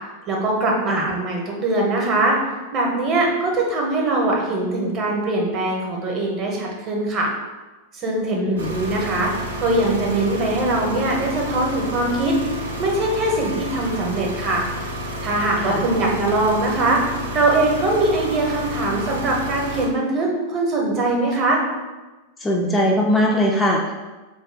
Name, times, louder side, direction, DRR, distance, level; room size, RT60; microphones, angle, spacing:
voice 1, 0.3-2.3 2.7-7.3 7.9-9.3 9.6-12.3 12.8-14.6 15.2-17.0 17.3-21.6, right 2 dB, 35° right, -1 dB, 0.7 m, -22 dB
voice 2, 8.3-8.8 15.6-15.8 22.4-23.9, left 1 dB, 15° left, -1 dB, 0.3 m, -20 dB
sound 1, 8.6-19.9, equal, 70° right, 0.6 m, -30 dB
2.6 x 2.0 x 3.8 m, 1.2 s
figure-of-eight pair, 90°, 0 cm